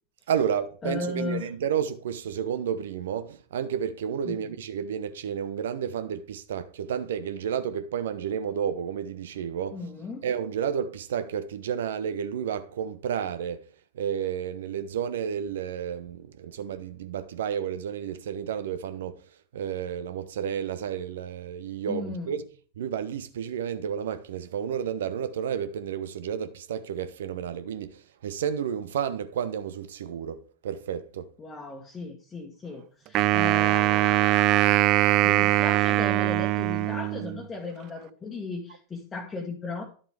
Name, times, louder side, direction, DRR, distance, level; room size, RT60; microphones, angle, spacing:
voice 1, 0.3-9.8 10.2-13.6 13.9-19.2 19.5-22.5 22.8-31.3, right 8 dB, 60° right, 0.8 m, -31 dB
voice 2, 0.8-1.5 4.3-4.5 9.7-10.2 21.9-22.4 31.4-34.9 35.2-39.8, left 3 dB, 15° left, 1.5 m, -36 dB
Wind instrument woodwind instrument, 33.1-37.4, right 17 dB, 40° right, 0.3 m, -22 dB
11.0 x 7.2 x 3.5 m
figure-of-eight pair, 90°, 0 cm